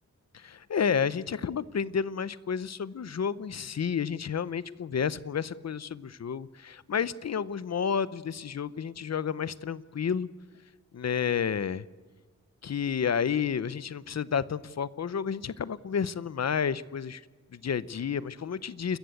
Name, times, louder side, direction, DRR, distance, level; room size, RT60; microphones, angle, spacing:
voice 1, 0.3-10.3 10.9-11.8 12.6-17.2 17.5-19.0, left 7 dB, 55° left, 18 dB, 0.7 m, -31 dB
29.0 x 14.5 x 8.3 m, 1.5 s
wide cardioid pair, 140°, 32 cm